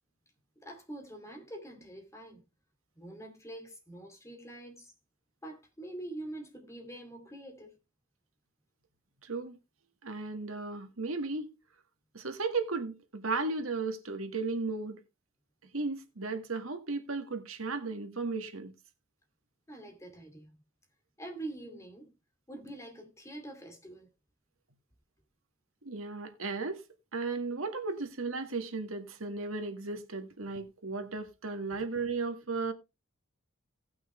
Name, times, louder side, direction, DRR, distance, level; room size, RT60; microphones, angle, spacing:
voice 1, 0.6-2.4 3.0-4.9 5.4-7.8 19.7-20.5 21.2-22.1 22.5-24.1, right 1 dB, 15° left, 2.5 m, -45 dB
voice 2, 9.2-9.6 10.0-11.5 12.1-15.0 15.6-18.8 25.9-26.8 27.1-32.7, right 3 dB, 85° right, 1.7 m, -35 dB
18.0 x 6.1 x 3.2 m
head